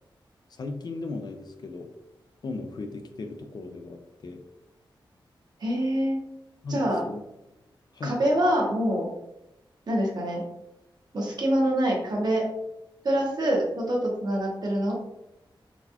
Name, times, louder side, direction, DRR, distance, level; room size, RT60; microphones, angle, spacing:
voice 1, 0.5-1.9 2.4-4.4 6.6-7.2 7.9-8.2, left 3 dB, 50° left, 5 dB, 0.4 m, -36 dB
voice 2, 5.6-6.2 6.7-7.0 8.0-9.1 9.9-10.4 11.1-12.4 13.0-14.9, right 1 dB, 50° right, -2 dB, 0.9 m, -25 dB
3.9 x 2.3 x 2.8 m, 0.89 s
wide cardioid pair, 150°, 9 cm